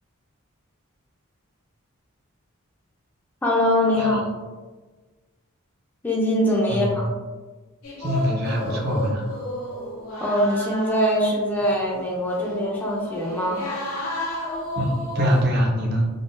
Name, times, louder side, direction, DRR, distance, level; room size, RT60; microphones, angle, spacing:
voice 1, 3.4-4.2 6.0-7.1 10.2-13.7, equal, 10° left, -4 dB, 0.4 m, -22 dB
voice 2, 4.0-4.3 6.7-6.9 8.0-9.3 14.8-16.1, equal, 50° right, 0 dB, 0.6 m, -23 dB
sound 1, 7.8-15.4, left 1 dB, 80° left, 0.7 m, -32 dB
3.6 x 2.1 x 2.5 m, 1.3 s
head